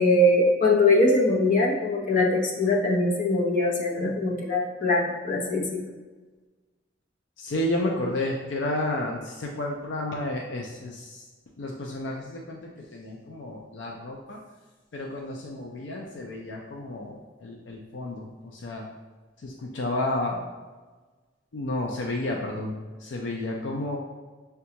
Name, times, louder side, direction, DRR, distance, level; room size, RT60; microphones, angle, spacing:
voice 1, 0.0-5.8, left 2 dB, 45° left, -3 dB, 0.7 m, -22 dB
voice 2, 7.4-10.9 11.6-12.6 12.9-14.4 14.9-17.1 17.4-18.2 18.6-18.8 19.4-20.4 21.5-22.7 23.0-24.0, left 1 dB, 75° left, 0 dB, 0.4 m, -31 dB
6.0 x 2.3 x 2.8 m, 1.3 s
head